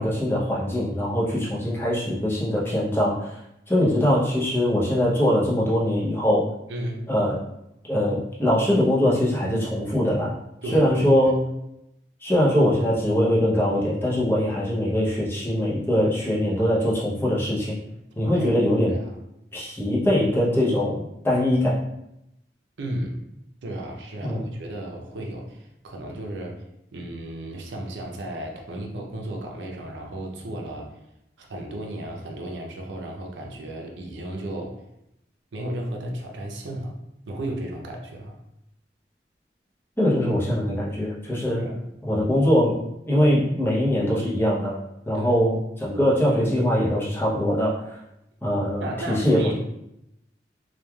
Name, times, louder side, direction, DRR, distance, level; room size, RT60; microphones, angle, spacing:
voice 1, 0.0-3.4 3.7-6.4 7.1-7.4 7.9-10.3 10.7-11.4 12.2-17.8 18.2-19.0 19.5-21.8 24.2-24.5 40.0-41.7 42.0-42.8 43.1-44.8 45.1-48.0 48.4-49.5, equal, 15° left, -6 dB, 0.6 m, -22 dB
voice 2, 6.7-7.1 10.6-11.1 18.3-18.5 18.9-19.1 22.8-23.2 23.6-26.6 26.9-31.0 31.4-34.8 35.5-37.0 37.3-38.4 41.6-41.8 45.1-45.4 48.8-49.5, right 1 dB, 90° right, 1 dB, 0.5 m, -34 dB
3.1 x 2.3 x 2.2 m, 0.83 s
head